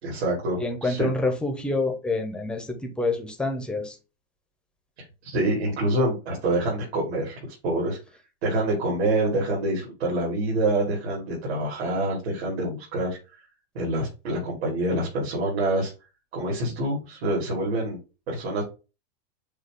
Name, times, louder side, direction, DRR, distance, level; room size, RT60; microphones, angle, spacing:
voice 1, 0.0-1.1 5.2-8.0 8.4-13.2 13.7-15.9 16.3-18.0 18.3-18.6, right 1 dB, 80° right, 2.7 m, -26 dB
voice 2, 0.6-4.0, left 2 dB, 5° left, 0.6 m, -27 dB
6.5 x 2.3 x 3.5 m
supercardioid pair, 150°, 32 cm